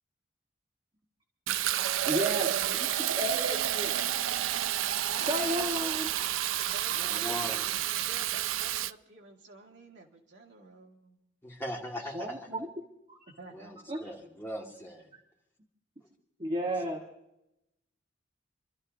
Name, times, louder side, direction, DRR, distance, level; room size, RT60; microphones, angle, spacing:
Fill (with liquid), 1.5-8.9, right 12 dB, 85° right, 0.4 m, -30 dB
voice 1, 2.1-4.0 5.2-6.1 12.0-12.7 13.1-13.2 13.9-14.1 16.4-17.0, equal, 30° right, -1 dB, 1.4 m, -33 dB
voice 2, 4.8-6.0 6.6-7.5 7.9-11.2 13.3-13.8, right 3 dB, 65° right, 0 dB, 2.1 m, -49 dB
voice 3, 7.0-7.8 11.4-12.4 13.5-15.1 16.9-17.0, equal, 10° left, -2 dB, 2.4 m, -39 dB
28.5 x 13.0 x 2.7 m, 0.86 s
head